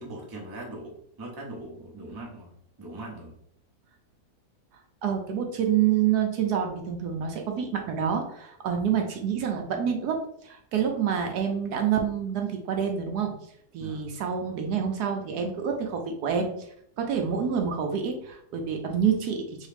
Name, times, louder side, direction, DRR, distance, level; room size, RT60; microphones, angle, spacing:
voice 1, 0.0-2.5 2.8-3.4 13.7-14.1, right 2 dB, 20° right, -2 dB, 0.5 m, -40 dB
voice 2, 5.0-13.3 13.7-16.7 17.0-19.7, right 8 dB, 70° right, 3 dB, 1.1 m, -27 dB
3.6 x 3.1 x 3.3 m, 0.70 s
omnidirectional pair, 1.9 m